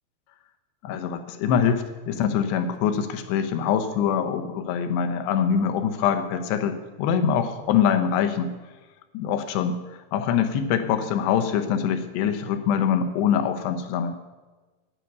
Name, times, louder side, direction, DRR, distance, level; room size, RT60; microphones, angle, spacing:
voice 1, 0.8-8.5 9.1-9.8 10.1-14.2, left 8 dB, 90° left, 8 dB, 3.1 m, -24 dB
11.0 x 9.3 x 6.7 m, 1.3 s
omnidirectional pair, 4.8 m